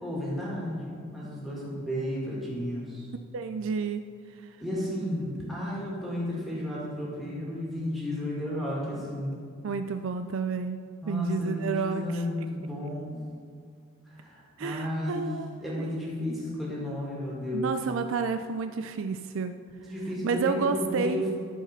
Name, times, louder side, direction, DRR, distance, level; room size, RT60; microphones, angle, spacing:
voice 1, 0.0-3.1 4.6-9.3 11.0-13.2 14.1-15.3 15.6-17.7 19.8-21.3, left 1 dB, ahead, -6 dB, 2.2 m, -33 dB
voice 2, 3.3-4.0 9.6-10.8 11.1-12.2 14.6-15.5 15.8-16.0 17.5-19.6 20.2-21.2, right 5 dB, 60° right, 9 dB, 0.3 m, -30 dB
12.0 x 4.8 x 5.8 m, 2.2 s
head